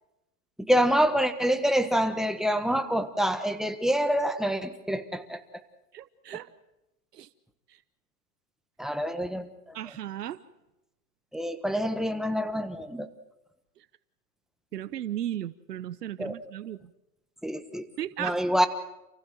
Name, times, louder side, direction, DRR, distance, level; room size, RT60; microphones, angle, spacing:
voice 1, 0.6-5.4 8.8-9.8 11.3-13.1 16.2-16.3 17.4-17.9 18.2-18.7, equal, ahead, 8 dB, 1.3 m, -26 dB
voice 2, 5.9-6.5 7.1-7.3 7.7-7.8 9.7-10.4 14.7-16.8 18.0-18.4, right 11 dB, 85° right, 16 dB, 1.0 m, -35 dB
28.5 x 15.5 x 7.7 m, 0.94 s
hypercardioid pair, 115°, 47 cm